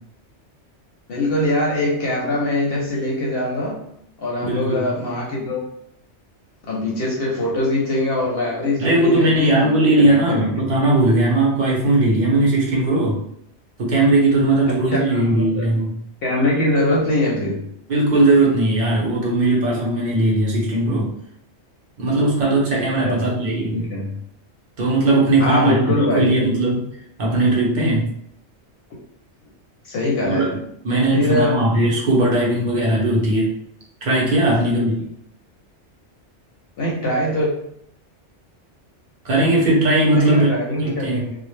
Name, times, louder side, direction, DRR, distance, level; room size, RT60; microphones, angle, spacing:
voice 1, 1.1-3.8 4.2-5.6 6.7-10.7 14.7-15.7 16.2-17.6 23.0-23.3 23.7-24.2 25.4-26.5 28.9-29.0 29.8-30.5 31.1-31.6 32.5-32.7 34.4-34.7 36.8-37.5 40.1-41.4, left 1 dB, 65° left, -3 dB, 0.7 m, -23 dB
voice 2, 4.4-4.8 8.8-13.2 13.8-15.9 17.9-21.1 22.0-23.9 24.8-25.7 26.1-26.9 27.2-28.1 30.2-30.6 30.8-33.5 34.0-35.0 39.2-40.5 40.8-41.3, right 2 dB, 45° right, -4 dB, 0.8 m, -18 dB
2.1 x 2.0 x 3.0 m, 0.71 s
omnidirectional pair, 1.2 m